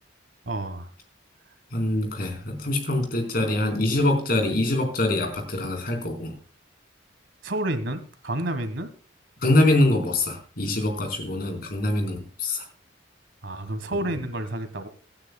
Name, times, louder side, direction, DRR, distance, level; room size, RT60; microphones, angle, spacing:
voice 1, 0.4-0.9 7.4-8.9 13.4-14.9, right 1 dB, 70° right, 11 dB, 1.5 m, -30 dB
voice 2, 1.7-6.3 9.4-12.7 14.1-14.2, left 1 dB, 50° left, 3 dB, 4.2 m, -24 dB
25.5 x 9.7 x 2.3 m, 0.39 s
head